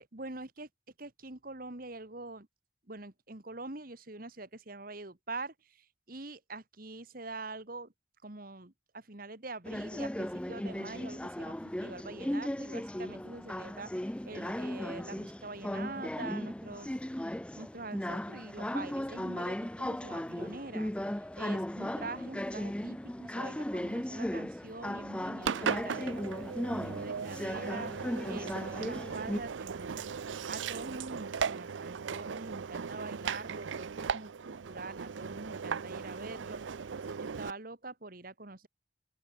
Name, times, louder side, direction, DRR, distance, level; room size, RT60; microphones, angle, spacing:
voice 1, 0.0-0.7 1.0-2.5 2.9-7.9 8.2-17.0 17.3-36.6 37.0-38.7, right 2 dB, 45° right, 1.8 m, -45 dB
sound 1, 9.6-29.4, left 1 dB, 5° left, 0.4 m, -37 dB
Engine, 25.4-37.5, right 6 dB, 70° right, 0.5 m, -37 dB
open air
head